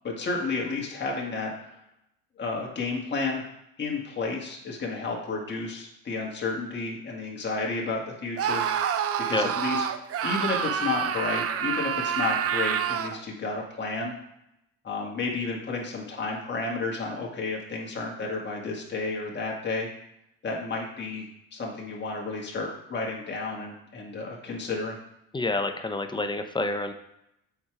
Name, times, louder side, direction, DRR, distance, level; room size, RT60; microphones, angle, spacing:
voice 1, 0.0-1.8 2.4-3.4 3.8-8.6 9.3-9.8 10.2-14.1 14.8-19.9 20.4-25.0, left 3 dB, 35° left, -1 dB, 1.9 m, -31 dB
Screaming, 8.4-13.2, right 8 dB, 45° right, 0.7 m, -27 dB
voice 2, 25.3-26.9, left 2 dB, 15° left, 7 dB, 0.8 m, -28 dB
7.1 x 4.8 x 4.9 m, 0.82 s
supercardioid pair, 80°, 33 cm